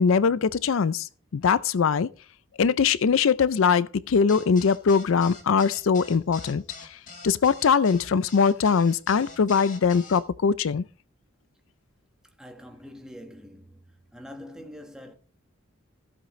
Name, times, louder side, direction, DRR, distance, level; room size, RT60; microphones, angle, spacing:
voice 1, 0.0-2.1 2.6-7.0 7.2-10.8, left 6 dB, 80° left, 0.4 m, -22 dB
sound 1, 4.3-10.2, left 3 dB, 40° left, 1.9 m, -44 dB
voice 2, 12.4-13.8 14.1-15.1, left 1 dB, 5° right, 1.3 m, -44 dB
15.0 x 8.1 x 3.2 m
head